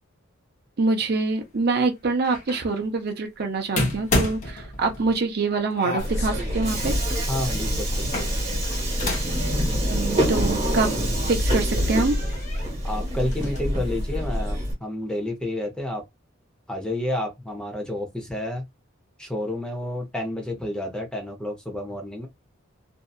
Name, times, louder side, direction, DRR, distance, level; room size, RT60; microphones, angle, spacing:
voice 1, 0.8-7.0 9.9-10.9 11.3-12.2, right 3 dB, 50° right, 0.6 m, -25 dB
sound 1, 2.2-2.7 3.8-5.2 5.8-6.7 7.9-9.4 9.7-9.8 11.1-11.2 11.7-12.7 13.1-13.6, left 1 dB, 35° left, 0.8 m, -30 dB
Subway metro underground, 6.0-14.7, equal, 30° right, 1.3 m, -25 dB
voice 2, 7.3-8.3 12.8-16.0 16.7-18.6 19.2-22.3, left 1 dB, 5° left, 0.7 m, -30 dB
2.7 x 2.3 x 2.3 m
head